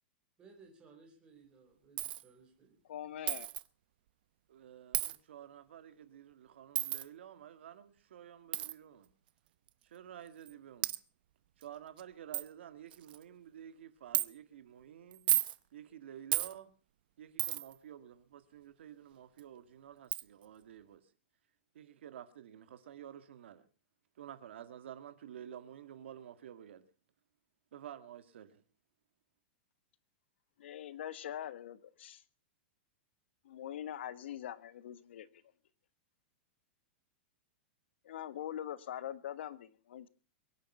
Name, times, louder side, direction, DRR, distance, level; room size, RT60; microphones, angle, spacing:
voice 1, 0.4-2.8, right 4 dB, 15° right, 4.5 m, -60 dB
Coin (dropping), 2.0-2.2 3.3-3.6 4.9-5.2 6.7-7.0 8.5-8.7 9.7-9.8 10.5-10.6 10.8-11.0 11.6-11.7 12.0-12.1 12.3-12.5 12.9-13.2 14.1-14.3 15.1-15.6 16.3-16.5 17.4-17.7 19.4-19.5 20.1-20.2, right 14 dB, 55° right, 0.8 m, -32 dB
voice 2, 2.9-3.5 30.6-32.2 33.4-35.3 38.0-40.1, left 11 dB, 70° left, 1.4 m, -43 dB
voice 3, 4.5-9.1 9.8-10.9 11.6-15.3 15.7-16.7 17.2-21.1 21.7-23.7 24.2-26.8 27.7-28.6, right 10 dB, 75° right, 1.9 m, -51 dB
22.5 x 10.5 x 5.6 m
supercardioid pair, 170°, 6 cm